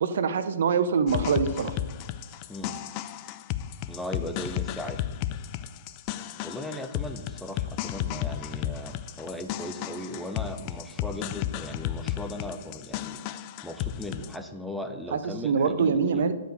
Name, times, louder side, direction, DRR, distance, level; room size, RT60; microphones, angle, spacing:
voice 1, 0.0-1.8 15.1-16.3, right 5 dB, 60° right, 11 dB, 0.7 m, -24 dB
sound 1, 1.1-14.4, left 12 dB, 35° left, 0.4 m, -33 dB
voice 2, 2.5-2.8 3.9-5.0 6.4-13.2 13.6-16.3, left 1 dB, ahead, 5 dB, 0.7 m, -37 dB
10.0 x 5.2 x 5.1 m, 1.3 s
figure-of-eight pair, 125°, 0 cm